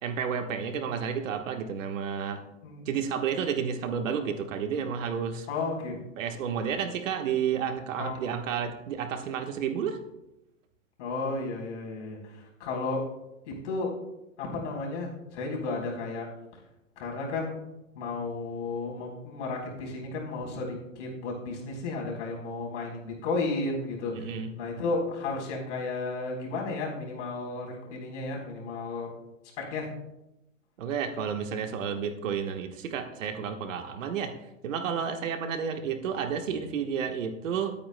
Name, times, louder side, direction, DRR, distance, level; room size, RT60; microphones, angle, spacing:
voice 1, 0.0-2.4 2.8-5.5 6.2-10.0 24.1-24.5 30.8-34.3 34.6-37.7, right 7 dB, 65° right, 5 dB, 1.4 m, -31 dB
voice 2, 5.5-6.0 8.0-8.2 11.0-13.0 13.5-13.9 14.4-16.3 17.0-17.6 17.9-29.1 29.6-29.9, left 3 dB, 60° left, -1 dB, 4.0 m, -33 dB
22.0 x 8.7 x 2.2 m, 0.93 s
hypercardioid pair, 125°, 41 cm